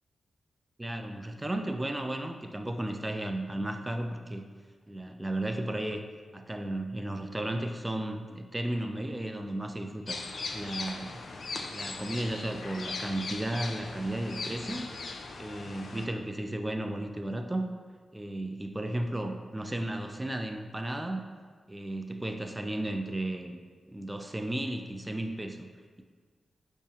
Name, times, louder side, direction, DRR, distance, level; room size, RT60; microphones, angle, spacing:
voice 1, 0.8-4.4 4.9-6.0 6.3-10.2 10.5-11.2 11.7-14.9 15.4-17.7 18.1-21.2 21.7-23.6 23.9-25.7, right 1 dB, 20° right, 5 dB, 0.3 m, -34 dB
sound 1, 10.1-16.1, left 3 dB, 70° left, 0.3 m, -39 dB
4.9 x 2.4 x 2.7 m, 1.5 s
cardioid pair, 50°, 0 cm